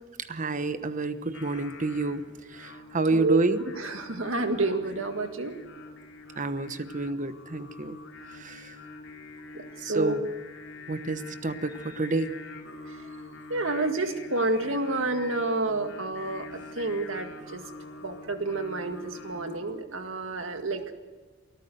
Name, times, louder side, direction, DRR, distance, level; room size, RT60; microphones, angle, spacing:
voice 1, 0.3-3.6 6.4-8.0 8.3-8.8 9.8-10.2 10.9-12.3, right 3 dB, 40° right, 11 dB, 1.1 m, -29 dB
Singing, 1.3-19.6, left 3 dB, 80° left, 3.2 m, -45 dB
voice 2, 3.1-5.5 9.5-10.2 12.9-13.0 13.5-17.6 18.0-20.9, right 2 dB, 90° right, 6 dB, 1.9 m, -29 dB
24.5 x 14.0 x 7.8 m, 1.4 s
head